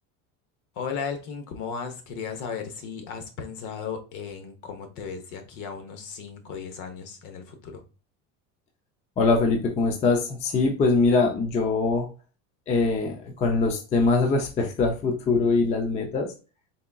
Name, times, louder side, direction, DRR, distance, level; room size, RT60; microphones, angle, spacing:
voice 1, 0.8-7.8, left 6 dB, 60° left, 1.0 m, -35 dB
voice 2, 9.2-12.1 12.7-16.3, left 3 dB, 20° left, 0.4 m, -23 dB
4.0 x 3.5 x 2.2 m
cardioid pair, 150°, 34 cm